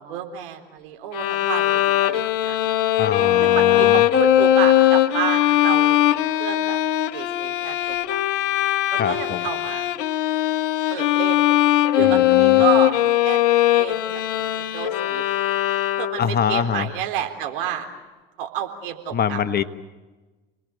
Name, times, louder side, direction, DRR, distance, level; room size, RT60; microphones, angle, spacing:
voice 1, 0.0-2.6 3.4-6.8 7.1-9.9 10.9-11.4 12.0-15.2 16.0-17.9 18.4-19.4, right 10 dB, 65° right, 4 dB, 3.8 m, -30 dB
Bowed string instrument, 1.1-16.4, left 13 dB, 65° left, 1.1 m, -20 dB
voice 2, 3.0-4.0 9.0-9.5 12.0-12.6 16.2-16.9 19.1-19.6, left 8 dB, 35° left, 11 dB, 1.4 m, -24 dB
29.5 x 20.5 x 9.3 m, 1.2 s
figure-of-eight pair, 75°, 29 cm